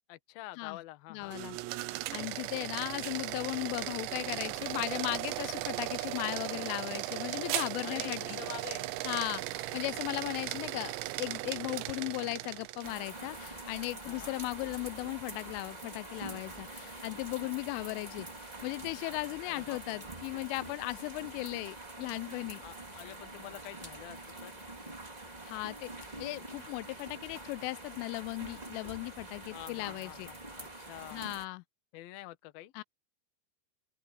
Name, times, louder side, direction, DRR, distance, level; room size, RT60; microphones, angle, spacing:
voice 1, 0.1-1.4 7.8-8.9 14.0-14.4 19.4-20.1 22.6-24.6 29.5-31.3 31.9-32.7, left 16 dB, 70° left, 2.5 m, -47 dB
voice 2, 1.1-1.6 2.1-8.4 9.0-22.6 25.5-25.9 26.2-30.3 31.1-31.6 32.7-32.8, left 24 dB, 90° left, 3.1 m, -37 dB
sound 1, 1.2-13.0, right 17 dB, 80° right, 2.9 m, -37 dB
sound 2, 12.8-31.4, right 2 dB, 25° right, 0.8 m, -45 dB
open air
omnidirectional pair, 5.6 m